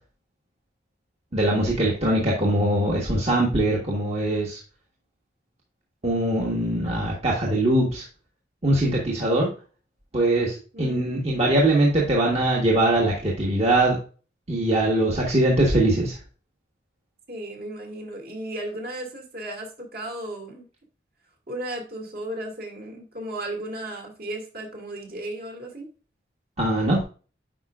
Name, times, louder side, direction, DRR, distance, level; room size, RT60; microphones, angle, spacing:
voice 1, 1.3-4.6 6.0-8.0 8.6-9.5 10.1-14.0 14.5-16.2 26.6-27.0, right 1 dB, 35° right, -3 dB, 1.3 m, -22 dB
voice 2, 10.7-11.1 17.3-20.7 21.5-25.9, right 1 dB, 55° right, 1 dB, 2.2 m, -35 dB
9.0 x 5.1 x 2.4 m, 0.36 s
head